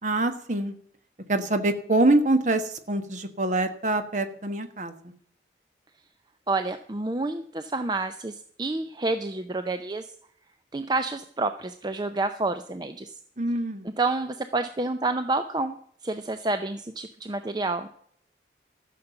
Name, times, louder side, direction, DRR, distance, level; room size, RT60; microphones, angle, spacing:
voice 1, 0.0-0.7 1.3-4.9 13.4-13.9, right 2 dB, 45° right, 8 dB, 1.3 m, -25 dB
voice 2, 6.5-10.1 10.7-13.1 14.0-15.8 16.0-17.9, right 3 dB, 25° right, 9 dB, 0.5 m, -29 dB
13.5 x 6.8 x 7.0 m, 0.63 s
head